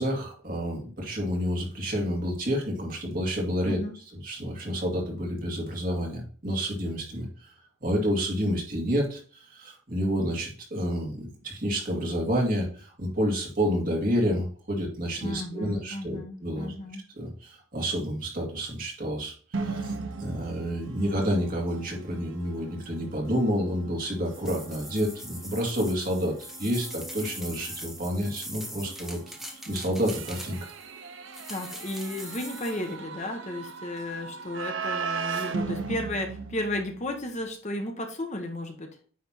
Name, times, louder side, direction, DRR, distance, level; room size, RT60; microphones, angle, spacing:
voice 1, 0.0-3.8 4.1-7.5 7.8-16.7 17.2-29.3 29.7-30.7, equal, 40° right, 0 dB, 2.4 m, -29 dB
voice 2, 15.2-17.0 31.5-38.9, left 1 dB, 35° left, 4 dB, 1.0 m, -34 dB
sound 1, 19.5-37.3, right 4 dB, 60° right, 0.8 m, -38 dB
sound 2, 24.3-30.8 31.3-32.9, equal, ahead, 0.9 m, -42 dB
9.4 x 3.4 x 4.3 m, 0.42 s
head